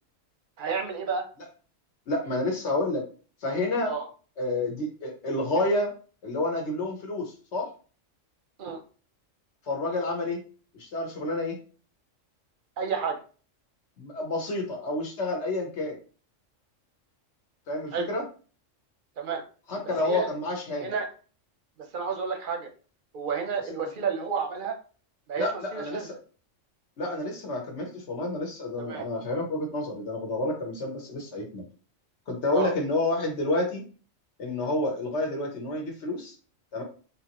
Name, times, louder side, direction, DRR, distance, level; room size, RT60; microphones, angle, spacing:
voice 1, 0.6-1.3 3.9-4.0 8.6-8.8 12.8-13.2 17.9-18.1 19.2-19.4 20.0-20.3 20.8-21.1 21.9-22.7 23.1-24.8 25.3-26.1 28.8-29.1 32.5-32.7, right 6 dB, 50° right, 5 dB, 0.7 m, -30 dB
voice 2, 2.1-3.0 3.4-3.9 4.4-5.9 6.2-7.7 9.7-10.4 10.7-11.6 14.0-16.0 17.7-18.2 19.7-20.9 25.4-26.1 27.0-31.6 32.3-33.8 34.4-36.3 36.7-36.8, left 2 dB, 60° left, 1 dB, 1.3 m, -29 dB
3.9 x 2.7 x 2.9 m, 0.38 s
omnidirectional pair, 1.3 m